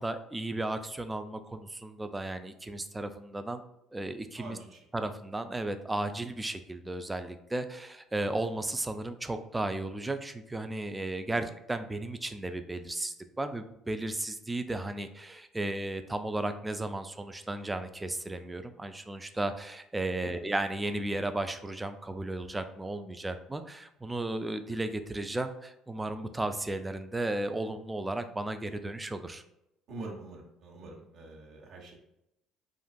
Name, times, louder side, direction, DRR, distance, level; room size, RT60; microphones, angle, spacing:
voice 1, 0.0-3.6 3.9-4.6 4.9-29.4, right 2 dB, 15° right, 9 dB, 0.3 m, -34 dB
voice 2, 4.3-5.1 11.3-11.4 20.2-20.4 29.9-32.0, right 2 dB, 60° right, -1 dB, 0.9 m, -45 dB
3.7 x 2.4 x 2.3 m, 0.83 s
hypercardioid pair, 65°, 0 cm